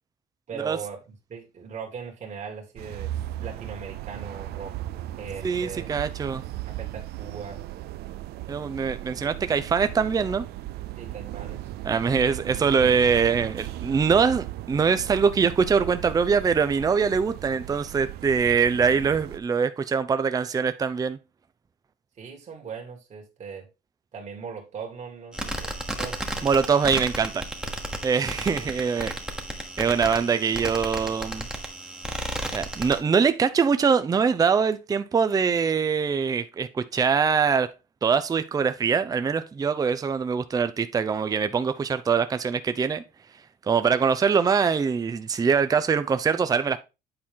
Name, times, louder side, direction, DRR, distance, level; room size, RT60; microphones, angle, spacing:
voice 1, 0.5-3.1 3.4-4.7 5.2-5.9 6.7-7.6 11.0-11.7 22.2-23.7 24.1-26.2 28.6-28.7, right 6 dB, 40° right, 2.1 m, -39 dB
sound 1, 2.8-19.4, right 15 dB, 70° right, 0.5 m, -37 dB
voice 2, 5.4-6.4 8.5-10.4 11.8-21.2 26.4-27.4 28.0-29.1 29.8-31.5 32.5-37.7 38.0-43.0 43.7-46.8, right 6 dB, 20° right, 0.5 m, -23 dB
sound 2, 25.3-33.0, right 1 dB, 5° right, 1.2 m, -33 dB
8.7 x 4.3 x 3.6 m
cardioid pair, 110°, 17 cm